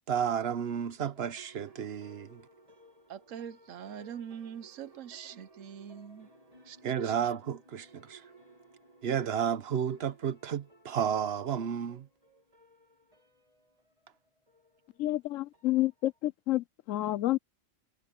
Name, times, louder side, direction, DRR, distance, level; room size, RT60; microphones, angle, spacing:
voice 1, 0.0-2.4 5.3-5.4 6.8-8.2 9.0-12.1, right 8 dB, 55° right, 1.1 m, -32 dB
sound 1, 0.7-16.3, right 1 dB, 30° right, 3.0 m, -59 dB
voice 2, 3.1-6.3 6.7-6.8 7.0-7.1, right 8 dB, 85° right, 1.1 m, -43 dB
voice 3, 15.0-17.4, left 16 dB, 80° left, 1.0 m, -29 dB
omnidirectional pair, 1.3 m